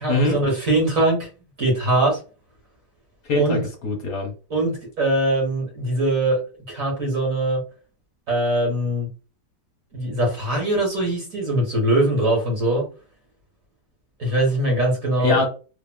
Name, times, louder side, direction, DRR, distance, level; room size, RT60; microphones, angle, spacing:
voice 1, 0.0-1.3 1.6-2.2 3.3-3.6 4.5-6.4 6.7-7.6 8.3-9.1 9.9-12.8 14.2-15.4, right 1 dB, 50° right, -1 dB, 1.4 m, -21 dB
voice 2, 3.3-4.3 15.2-15.5, left 3 dB, 60° left, 3 dB, 1.1 m, -22 dB
3.3 x 2.3 x 2.2 m, 0.34 s
omnidirectional pair, 1.9 m